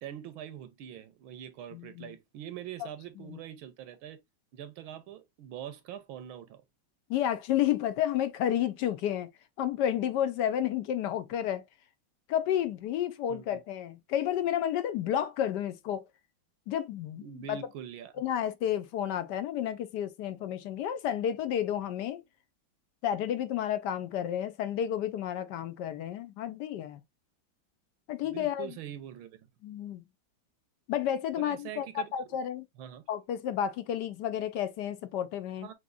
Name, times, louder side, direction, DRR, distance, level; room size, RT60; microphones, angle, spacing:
voice 1, 0.0-4.2 4.5-6.6 13.3-13.6 17.2-18.1 28.2-29.4 31.4-32.1 32.8-33.1 35.6-35.7, right 10 dB, 85° right, 1.6 m, -43 dB
voice 2, 1.7-2.1 3.2-3.4 7.1-9.3 9.6-11.6 12.3-16.0 16.7-17.6 18.2-22.2 23.0-27.0 28.1-28.7 29.6-30.0 30.9-32.7 33.1-35.7, left 10 dB, 70° left, 1.1 m, -31 dB
6.0 x 2.9 x 2.5 m
omnidirectional pair, 2.2 m